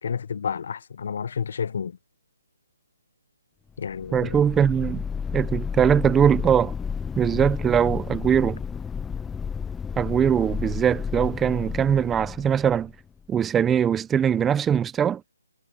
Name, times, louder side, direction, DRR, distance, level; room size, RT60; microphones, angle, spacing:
voice 1, 0.0-2.0 3.8-4.4, left 6 dB, 55° left, 1.3 m, -30 dB
sound 1, 3.9-13.2, left 6 dB, 5° left, 0.4 m, -32 dB
voice 2, 4.1-5.0 5.3-6.7 7.2-8.6 10.0-12.9 13.3-15.2, right 8 dB, 10° right, 1.0 m, -21 dB
hypercardioid pair, 155°, 0 cm